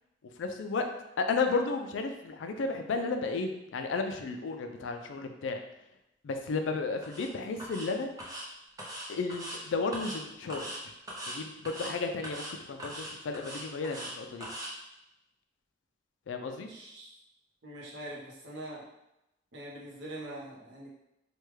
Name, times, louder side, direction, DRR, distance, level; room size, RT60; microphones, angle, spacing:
voice 1, 0.4-0.9 1.2-5.6 6.2-8.1 9.1-10.9 11.3-14.5 16.3-16.7, left 4 dB, 85° left, 6 dB, 0.4 m, -33 dB
sound 1, 7.0-7.3 7.6-7.9 8.2-8.4 8.8-9.6 9.9-10.2 10.5-10.8 11.1-11.4 11.6-11.9 12.2-12.5 12.8-14.1 14.4-14.7, right 1 dB, 20° right, 0.6 m, -40 dB
voice 2, 16.7-17.1 17.6-18.9 19.5-20.9, right 1 dB, 70° right, -4 dB, 0.8 m, -43 dB
3.3 x 2.2 x 3.1 m, 0.88 s
head